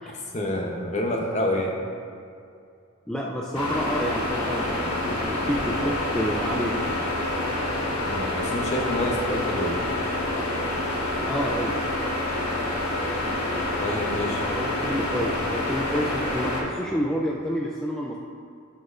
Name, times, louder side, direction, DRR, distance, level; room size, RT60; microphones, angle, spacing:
voice 1, 0.3-1.8 8.1-9.8 13.8-14.4 15.0-15.1, left 1 dB, 30° left, 0 dB, 0.9 m, -28 dB
voice 2, 3.1-7.1 11.3-11.8 14.3-18.2, equal, 5° left, -3 dB, 0.3 m, -29 dB
sound 1, 3.5-16.6, left 1 dB, 85° left, 1.5 m, -27 dB
12.5 x 6.1 x 2.6 m, 2.4 s
head